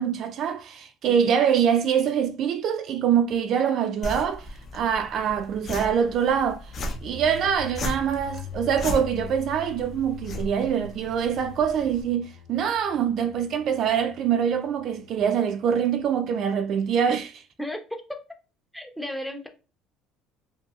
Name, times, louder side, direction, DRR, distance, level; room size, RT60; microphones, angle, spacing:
voice 1, 0.0-6.7 7.0-17.4, right 8 dB, 55° right, 0.3 m, -24 dB
sound 1, 4.0-12.0, left 2 dB, 40° left, 0.6 m, -37 dB
sound 2, 6.9-15.8, left 5 dB, 90° left, 0.6 m, -43 dB
voice 2, 17.6-18.2 18.7-19.5, left 1 dB, ahead, 0.6 m, -34 dB
2.7 x 2.6 x 2.3 m
supercardioid pair, 105°, 0 cm